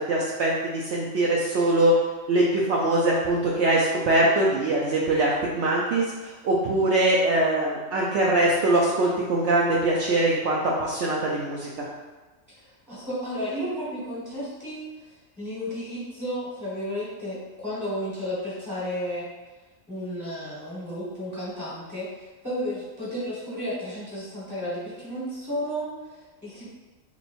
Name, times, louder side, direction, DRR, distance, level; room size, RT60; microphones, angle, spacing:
voice 1, 0.1-1.9 2.3-11.8, right 2 dB, 65° right, -3 dB, 0.8 m, -22 dB
voice 2, 12.5-19.3 19.9-26.7, equal, ahead, -9 dB, 1.2 m, -33 dB
3.0 x 3.0 x 4.3 m, 1.3 s
omnidirectional pair, 1.3 m